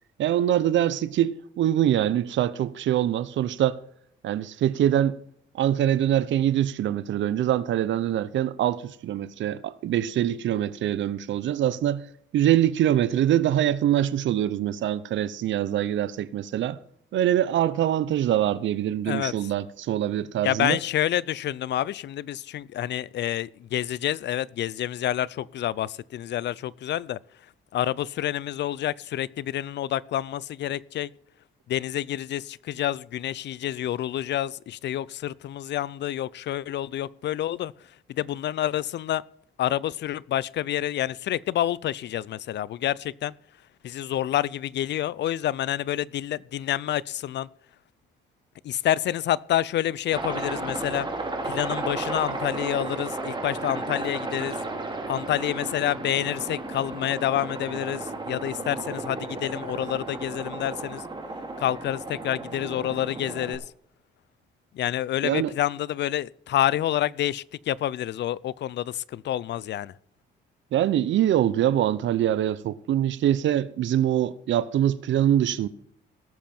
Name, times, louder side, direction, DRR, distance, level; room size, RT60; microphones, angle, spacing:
voice 1, 0.2-3.8 4.2-5.2 5.5-12.0 12.3-16.8 17.1-20.8 65.2-65.5 70.7-75.7, right 11 dB, 70° right, 0.8 m, -24 dB
voice 2, 20.4-27.2 27.7-31.1 31.7-37.7 38.1-39.2 39.6-43.3 43.8-47.5 48.6-51.1 51.4-54.5 55.1-61.0 61.6-63.6 64.7-69.9, left 12 dB, 60° left, 0.5 m, -28 dB
Aircraft, 50.1-63.6, right 2 dB, 25° right, 2.6 m, -34 dB
18.0 x 7.4 x 4.4 m
cardioid pair, 90°, 20 cm